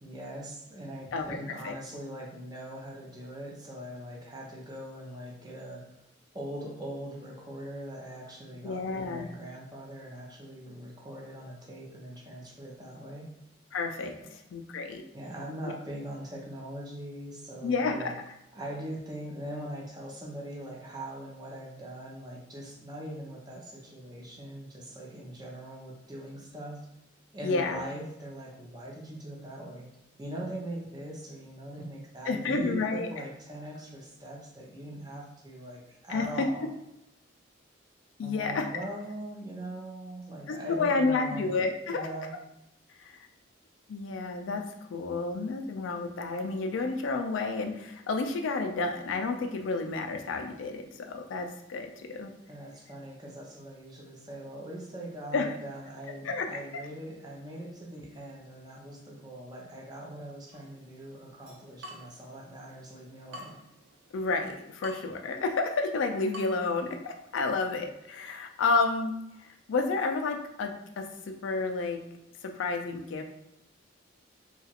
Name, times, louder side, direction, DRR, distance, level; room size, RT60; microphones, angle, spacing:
voice 1, 0.0-5.8 6.3-13.3 15.1-18.2 18.5-26.8 27.3-29.9 30.2-36.7 38.2-41.5 41.9-42.3 52.5-63.6, right 1 dB, 20° right, -2 dB, 0.6 m, -41 dB
voice 2, 8.6-9.3 13.7-14.1 14.5-15.0 17.6-18.1 27.4-27.8 32.3-33.1 36.1-36.5 38.2-38.8 40.5-42.1 43.0-43.2 43.9-44.6 44.9-52.3 55.3-55.5 56.2-56.5 64.1-69.1 69.4-72.0 72.4-73.2, left 3 dB, 75° left, 4 dB, 0.4 m, -30 dB
Water tap faucet / Drip, 60.5-67.5, left 1 dB, 65° right, 0.5 m, -51 dB
2.9 x 2.4 x 2.8 m, 0.85 s
head